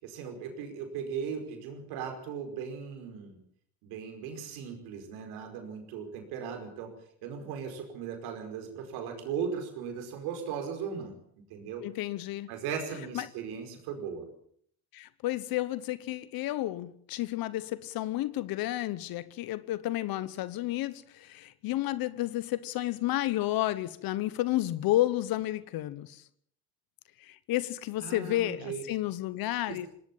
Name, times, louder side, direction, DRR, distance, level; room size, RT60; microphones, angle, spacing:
voice 1, 0.0-3.4 3.8-6.9 7.2-11.2 11.5-11.8 12.5-14.3 28.0-28.8 29.7-29.9, right 7 dB, 85° right, 5.1 m, -37 dB
voice 2, 11.8-12.5 13.1-13.3 14.9-26.2 27.2-29.9, left 15 dB, 70° left, 1.1 m, -31 dB
19.5 x 18.5 x 7.4 m
supercardioid pair, 80°, 37 cm